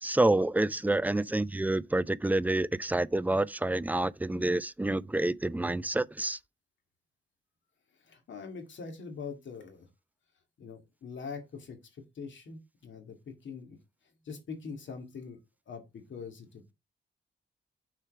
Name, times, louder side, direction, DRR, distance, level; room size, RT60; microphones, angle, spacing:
voice 1, 0.0-6.4, right 2 dB, 10° right, 0.3 m, -28 dB
voice 2, 8.0-9.9 10.6-13.8 14.2-15.4 15.7-16.7, left 5 dB, 75° left, 2.2 m, -43 dB
6.6 x 4.5 x 4.8 m
cardioid pair, 100°, 20 cm